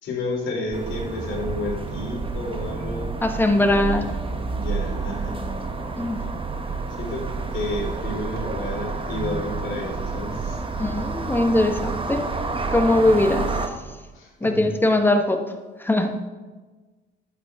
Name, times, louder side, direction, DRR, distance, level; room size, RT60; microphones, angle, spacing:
voice 1, 0.0-3.1 4.5-5.5 7.0-10.6 13.1-13.2 14.1-14.8, left 2 dB, 75° left, -2 dB, 3.3 m, -31 dB
sound 1, 0.7-13.7, right 4 dB, 25° right, 1.1 m, -29 dB
voice 2, 3.2-4.0 6.0-6.2 10.8-12.2 12.7-13.4 14.4-15.4 15.8-16.1, left 1 dB, 10° left, 5 dB, 1.3 m, -20 dB
11.5 x 8.4 x 3.7 m, 1.3 s
cardioid pair, 90°, 20 cm